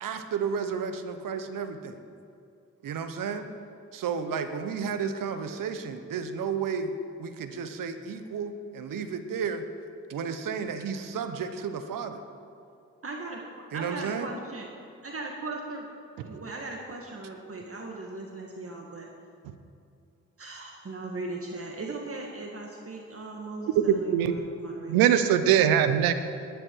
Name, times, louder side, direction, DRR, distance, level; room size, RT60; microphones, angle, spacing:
voice 1, 0.0-2.0 2.8-3.5 3.9-9.7 10.1-12.2 13.7-14.3, right 6 dB, 65° right, 9 dB, 1.2 m, -32 dB
voice 2, 13.0-13.4 13.7-14.7 15.0-15.8 16.2-19.1 20.4-25.0, right 3 dB, 40° right, 0 dB, 1.9 m, -38 dB
voice 3, 23.8-24.3 24.9-26.1, right 9 dB, 85° right, 11 dB, 0.9 m, -21 dB
20.0 x 10.5 x 4.7 m, 2.5 s
hypercardioid pair, 40°, 35 cm